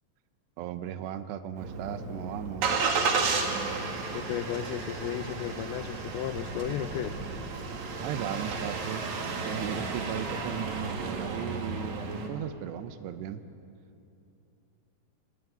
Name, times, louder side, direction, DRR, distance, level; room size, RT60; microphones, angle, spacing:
voice 1, 0.6-2.8 8.0-9.0 9.4-13.4, right 10 dB, 80° right, 11 dB, 3.0 m, -36 dB
Engine starting, 1.6-12.3, right 4 dB, 50° right, 2.8 m, -33 dB
voice 2, 4.1-7.1, left 11 dB, 80° left, 10 dB, 2.3 m, -34 dB
24.5 x 19.5 x 9.3 m, 2.7 s
omnidirectional pair, 5.0 m